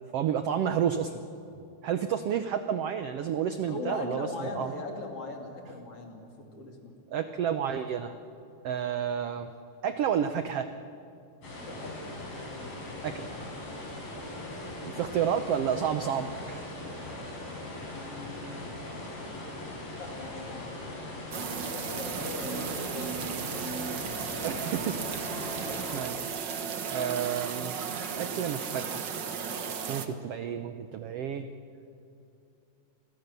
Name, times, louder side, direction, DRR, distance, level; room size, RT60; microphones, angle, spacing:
voice 1, 0.1-1.1 1.8-4.7 7.1-8.1 8.6-9.5 9.8-10.7 13.0-13.3 14.8-16.7 24.4-25.5 25.9-26.4 26.9-27.8 28.2-29.1 29.9-31.5, right 8 dB, 85° right, 9 dB, 1.3 m, -30 dB
voice 2, 3.7-6.9 11.6-12.0 17.8-18.6 20.0-20.7 21.1-21.2 21.7-24.4, left 3 dB, 45° left, 2 dB, 3.5 m, -40 dB
sound 1, 11.4-26.0, left 1 dB, 85° left, 7.7 m, -40 dB
sound 2, 21.3-30.1, right 6 dB, 60° right, 1.1 m, -35 dB
29.5 x 23.0 x 6.9 m, 2.6 s
omnidirectional pair, 3.9 m